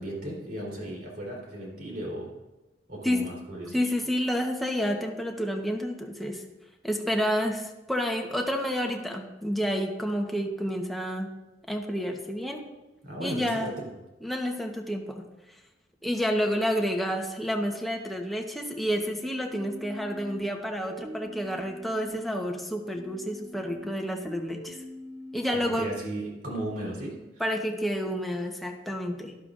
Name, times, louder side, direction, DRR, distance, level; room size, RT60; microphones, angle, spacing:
voice 1, 0.0-2.3 2.9-3.8 13.0-13.8 25.7-27.1, right 1 dB, 55° right, -3 dB, 3.6 m, -35 dB
voice 2, 3.7-6.4 6.8-11.3 11.7-12.6 13.2-13.7 14.2-15.2 16.0-24.8 25.3-25.9 27.4-29.4, equal, ahead, 1 dB, 1.0 m, -29 dB
sound 1, 19.5-22.5 23.0-26.0, equal, 35° right, 2.2 m, -44 dB
12.5 x 11.5 x 2.5 m, 1.1 s
head